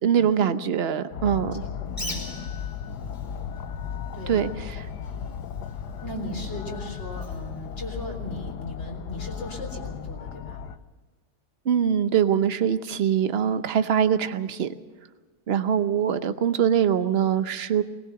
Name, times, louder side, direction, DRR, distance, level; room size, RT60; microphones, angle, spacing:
voice 1, 0.0-1.5 4.3-4.5 11.7-14.7 15.5-17.8, right 8 dB, 45° right, 11 dB, 0.9 m, -23 dB
sound 1, 1.1-10.8, left 7 dB, 80° left, 1.4 m, -35 dB
voice 2, 1.2-1.7 1.9-2.2 4.1-4.4 6.0-10.7, equal, 40° left, 1 dB, 4.0 m, -38 dB
Bird, 1.9-8.5, equal, 10° left, 2.8 m, -44 dB
20.0 x 19.0 x 6.9 m, 1.3 s
omnidirectional pair, 1.8 m